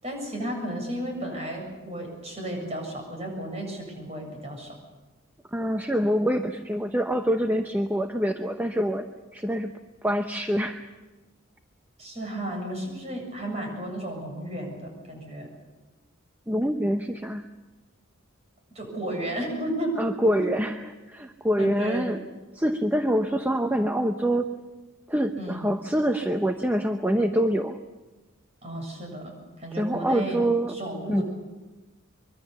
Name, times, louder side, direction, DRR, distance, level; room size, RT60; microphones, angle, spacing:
voice 1, 0.0-4.8 12.0-15.5 18.7-20.0 20.4-20.5 21.6-22.1 25.4-25.7 28.6-30.4 30.7-31.2, right 1 dB, 30° right, 2 dB, 7.5 m, -33 dB
voice 2, 5.5-9.1 9.3-9.7 10.0-10.9 16.5-17.4 20.0-22.2 22.5-24.5 25.1-27.8 29.7-30.8 31.1-31.2, equal, 10° right, 6 dB, 0.8 m, -25 dB
24.5 x 23.5 x 7.0 m, 1.2 s
head